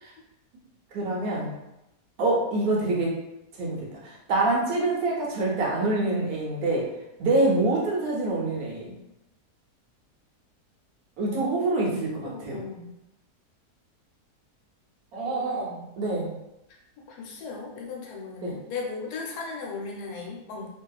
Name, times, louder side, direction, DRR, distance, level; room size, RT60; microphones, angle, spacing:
voice 1, 0.9-1.5 2.2-3.2 3.6-6.9 7.2-8.9 11.2-12.6 15.1-15.7 16.0-16.3 18.4-18.5, right 2 dB, 75° right, -3 dB, 1.1 m, -26 dB
voice 2, 11.3-13.0 15.2-15.8 17.0-20.7, left 4 dB, 80° left, -1 dB, 1.1 m, -37 dB
2.6 x 2.3 x 2.2 m, 0.90 s
omnidirectional pair, 1.7 m